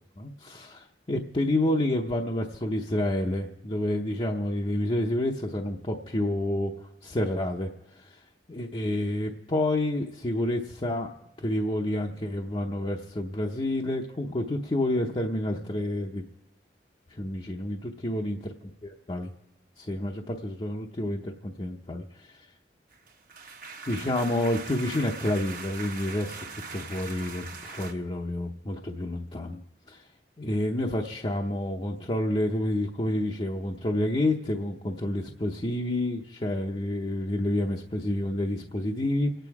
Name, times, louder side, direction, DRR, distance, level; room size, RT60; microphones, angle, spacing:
voice 1, 0.2-6.7 7.0-8.1 8.5-11.1 11.4-16.3 17.2-19.3 19.8-22.4 23.9-29.6 29.9-30.0 30.4-39.3, left 1 dB, 30° left, 0 dB, 0.8 m, -29 dB
sound 1, 22.9-27.9, right 4 dB, 55° right, 1.3 m, -41 dB
27.0 x 9.2 x 4.8 m, 0.95 s
head